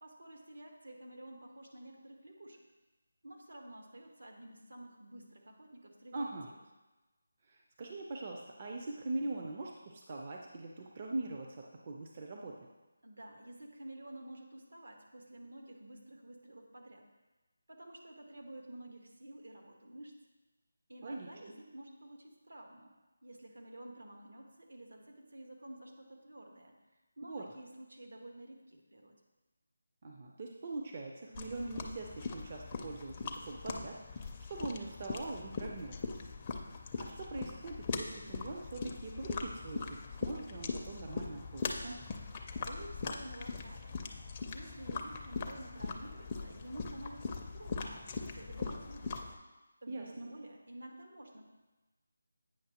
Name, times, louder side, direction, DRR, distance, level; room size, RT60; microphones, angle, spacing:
voice 1, 0.0-2.6 3.2-6.3 13.0-17.1 17.7-20.2 20.9-22.9 23.2-26.7 27.2-29.2 42.6-44.1 44.4-49.2 49.8-51.4, right 1 dB, 75° right, 1 dB, 1.3 m, -50 dB
voice 2, 6.1-6.5 7.4-12.7 21.0-21.3 27.2-27.5 30.0-36.2 37.0-42.0 49.9-50.3, right 2 dB, 35° right, 0 dB, 0.5 m, -42 dB
sound 1, 31.4-49.4, left 4 dB, 25° left, 0.4 m, -41 dB
8.6 x 5.6 x 2.8 m, 1.1 s
figure-of-eight pair, 165°, 0 cm